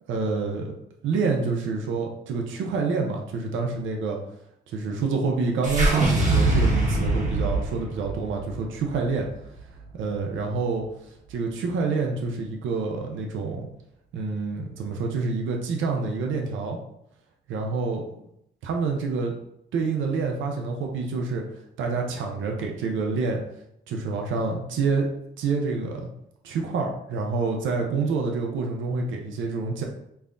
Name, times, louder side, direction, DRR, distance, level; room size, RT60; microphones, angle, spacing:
voice 1, 0.1-0.7 1.0-4.2 4.7-9.3 9.9-10.8 11.3-13.7 14.1-16.8 17.5-18.0 18.6-19.3 19.7-21.4 21.8-23.4 23.9-25.1 25.4-26.0 26.4-29.8, right 4 dB, 75° right, 2 dB, 0.7 m, -27 dB
sound 1, 5.6-9.9, right 2 dB, 40° right, 1.1 m, -24 dB
5.5 x 2.2 x 2.6 m, 0.76 s
cardioid pair, 90°, 20 cm